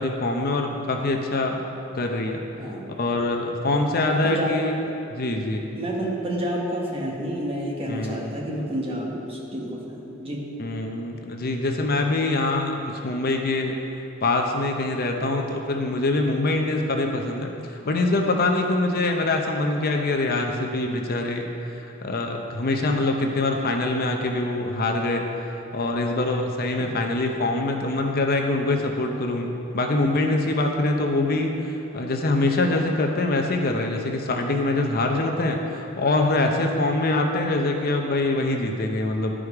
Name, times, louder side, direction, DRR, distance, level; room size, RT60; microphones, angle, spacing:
voice 1, 0.0-1.6 1.9-2.4 2.9-4.7 5.1-5.6 7.9-8.2 10.2-10.3 10.6-13.8 14.2-29.5 29.7-39.3, left 2 dB, 45° left, 3 dB, 0.7 m, -24 dB
voice 2, 2.6-2.9 3.9-5.0 5.7-10.5 26.8-26.9, right 1 dB, 25° right, -2 dB, 1.2 m, -29 dB
11.5 x 5.0 x 4.8 m, 2.8 s
head